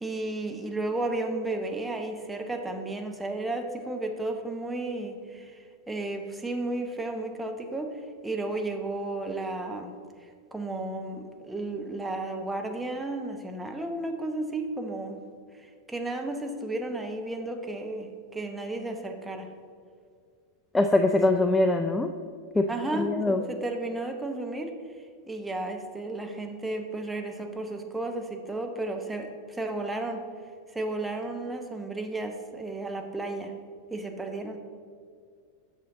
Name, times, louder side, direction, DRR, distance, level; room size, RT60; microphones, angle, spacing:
voice 1, 0.0-7.9 8.2-9.9 10.5-15.2 15.5-19.5 22.7-24.7 25.3-30.2 30.7-33.5 33.9-34.6, right 2 dB, 10° right, 3 dB, 0.8 m, -33 dB
voice 2, 20.7-22.1 22.6-22.7 22.9-23.4, left 2 dB, 10° left, 6 dB, 0.3 m, -23 dB
8.4 x 6.1 x 3.9 m, 2.2 s
figure-of-eight pair, 90°, 0 cm